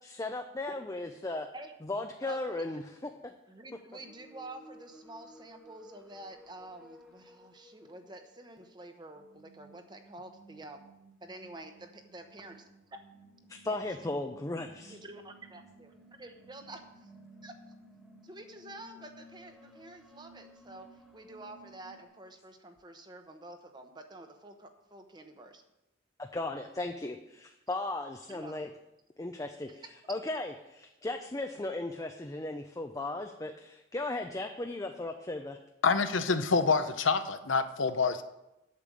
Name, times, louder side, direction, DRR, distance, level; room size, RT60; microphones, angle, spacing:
voice 1, 0.0-1.5 1.9-3.1 13.6-15.0 26.2-28.7 29.2-35.6, left 2 dB, 15° left, 4 dB, 0.5 m, -36 dB
voice 2, 2.2-2.7 3.5-10.9 11.2-12.6 13.7-13.8 14.9-17.1 17.4-17.5 18.2-25.6 28.3-28.6 29.7-29.8 30.0-30.1, right 2 dB, 20° right, 6 dB, 0.9 m, -48 dB
sound 1, 3.9-22.0, right 1 dB, ahead, 1.3 m, -57 dB
voice 3, 35.8-38.2, left 4 dB, 70° left, 10 dB, 0.7 m, -27 dB
8.4 x 6.8 x 7.5 m, 0.92 s
head